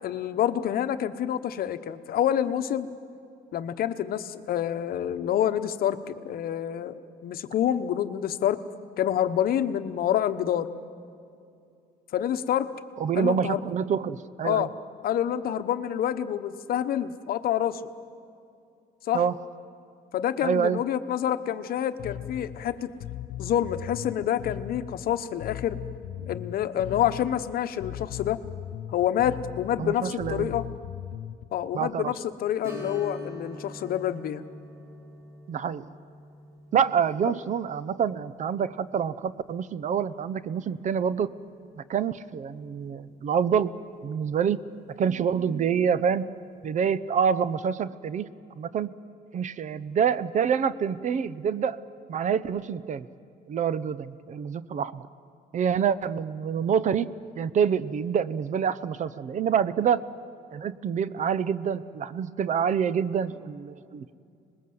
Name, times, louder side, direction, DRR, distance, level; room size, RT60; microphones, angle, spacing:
voice 1, 0.0-2.9 3.5-8.6 9.0-10.7 12.1-12.7 13.2-13.7 14.4-14.7 15.0-17.8 19.1-19.2 20.1-22.9 23.4-25.8 26.3-28.4 28.9-30.6 31.5-34.4, left 10 dB, 60° left, 11 dB, 1.0 m, -27 dB
voice 2, 13.0-14.7 19.1-19.4 20.4-20.8 29.8-30.5 31.7-32.1 35.5-35.9 36.7-41.3 41.9-43.7 44.0-44.6 45.0-46.3 46.6-48.3 48.6-48.9 49.3-51.8 52.1-53.1 53.5-55.0 55.5-60.1 60.5-64.1, right 7 dB, 45° right, 16 dB, 0.8 m, -26 dB
Bass guitar, 22.0-31.5, left 11 dB, 85° left, 0.7 m, -38 dB
Strum, 32.6-41.8 42.1-42.2 44.8-45.0 45.4-45.5, equal, 15° right, 4.1 m, -46 dB
26.0 x 20.5 x 7.9 m, 2.4 s
cardioid pair, 110°, 17 cm